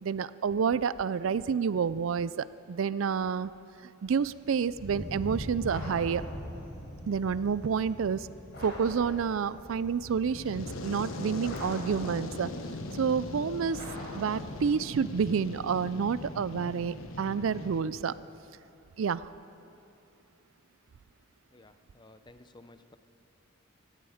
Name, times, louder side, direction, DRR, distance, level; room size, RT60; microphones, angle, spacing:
voice 1, 0.0-3.5 4.0-6.2 7.1-8.3 8.6-12.5 12.9-13.8 14.1-18.1 19.0-19.3, right 6 dB, 75° right, 17 dB, 0.4 m, -29 dB
Thunder, 4.1-14.7, equal, 40° left, 4.4 m, -44 dB
sound 1, 5.6-6.7 8.5-9.6 11.4-12.5 13.7-14.8, left 1 dB, 55° left, 3.9 m, -45 dB
Fire, 10.2-17.8, left 2 dB, 85° left, 1.1 m, -40 dB
voice 2, 21.5-23.0, left 2 dB, 20° left, 10 dB, 0.6 m, -55 dB
18.0 x 16.0 x 5.0 m, 2.7 s
head